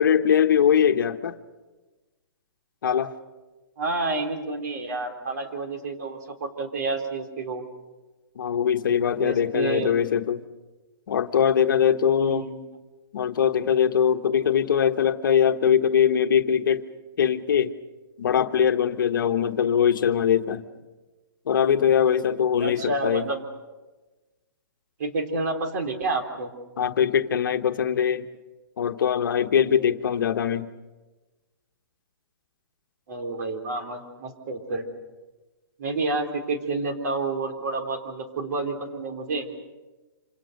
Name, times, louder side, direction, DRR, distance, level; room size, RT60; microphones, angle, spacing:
voice 1, 0.0-1.3 2.8-3.1 8.4-10.4 11.1-12.5 13.1-16.9 17.2-17.7 18.2-20.6 21.5-23.3 26.8-28.3 28.8-30.7, left 8 dB, 65° left, 8 dB, 1.3 m, -22 dB
voice 2, 3.8-7.6 9.2-9.9 12.2-12.6 22.6-23.4 25.0-26.5 33.1-34.9 35.8-39.5, right 3 dB, 50° right, 5 dB, 3.7 m, -29 dB
27.0 x 27.0 x 6.6 m, 1.2 s
hypercardioid pair, 165°, 12 cm